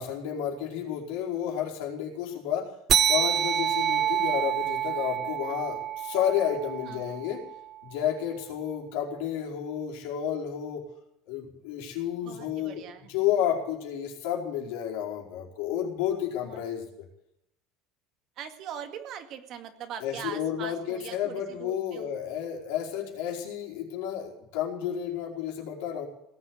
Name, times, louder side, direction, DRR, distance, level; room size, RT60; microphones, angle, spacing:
voice 1, 0.0-2.7 3.1-7.4 7.8-10.8 11.3-16.8 20.0-26.1, left 9 dB, 80° left, -1 dB, 4.7 m, -31 dB
sound 1, 2.9-7.8, right 9 dB, 30° right, 0.6 m, -27 dB
voice 2, 6.9-7.2 12.2-13.1 16.4-16.6 18.4-22.1, right 9 dB, 50° right, 7 dB, 2.1 m, -41 dB
18.5 x 8.0 x 9.6 m, 0.79 s
cardioid pair, 150°, 0 cm